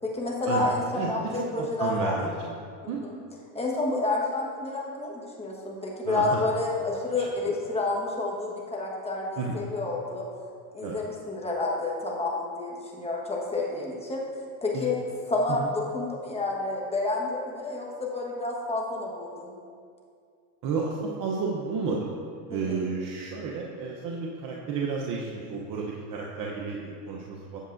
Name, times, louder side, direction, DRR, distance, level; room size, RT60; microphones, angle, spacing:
voice 1, 0.0-2.2 2.8-3.2 3.5-9.3 9.5-10.2 10.7-14.2 14.6-15.0 15.3-19.5 22.5-22.8, left 2 dB, 10° left, -2 dB, 1.3 m, -29 dB
voice 2, 0.9-2.6 2.9-3.0 6.0-6.4 7.2-7.3 9.4-9.6 10.8-11.0 14.7-14.9 15.5-15.7 20.6-22.1 22.5-27.6, right 4 dB, 40° right, -2 dB, 0.8 m, -32 dB
8.3 x 7.2 x 2.6 m, 2.3 s
supercardioid pair, 105°, 48 cm